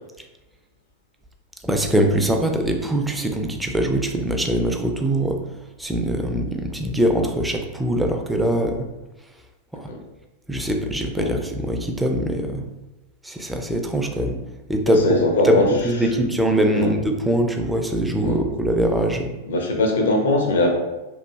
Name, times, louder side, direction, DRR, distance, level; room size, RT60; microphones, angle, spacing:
voice 1, 1.6-5.4 5.8-8.8 9.8-9.9 10.5-12.6 13.2-14.4 14.7-15.1 15.4-19.4, right 1 dB, 5° right, 3 dB, 0.3 m, -22 dB
voice 2, 14.9-15.7 16.1-16.2 16.7-16.9 18.2-18.4 19.5-20.7, left 2 dB, 60° left, 2 dB, 0.5 m, -21 dB
2.9 x 2.4 x 2.3 m, 1.1 s
figure-of-eight pair, 90°, 0 cm